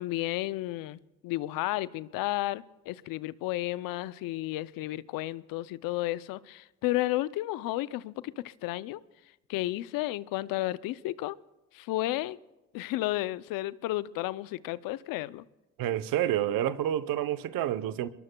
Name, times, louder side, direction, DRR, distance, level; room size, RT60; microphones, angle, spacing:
voice 1, 0.0-9.0 9.5-11.4 11.7-12.4 12.7-15.4, left 17 dB, 85° left, 0.5 m, -32 dB
voice 2, 15.8-18.1, right 11 dB, 80° right, 0.8 m, -29 dB
26.5 x 22.0 x 2.2 m
hypercardioid pair, 45°, 34 cm